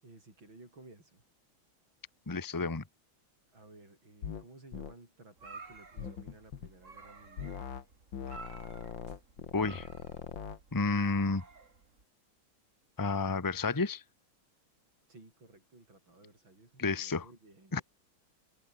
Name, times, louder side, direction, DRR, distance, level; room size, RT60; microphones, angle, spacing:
voice 1, 0.0-1.2 3.5-7.7 15.1-17.8, right 2 dB, 70° right, 8.8 m, -56 dB
voice 2, 2.3-2.8 9.5-9.9 10.7-11.4 13.0-14.0 16.8-17.2 17.7-17.8, left 3 dB, 10° left, 1.1 m, -30 dB
sound 1, 4.2-4.4 4.7-4.9 6.0-6.7 7.4-7.8 8.1-10.6, left 7 dB, 65° left, 2.5 m, -41 dB
sound 2, 5.4-12.0, right 4 dB, 35° right, 2.8 m, -52 dB
omnidirectional pair, 2.2 m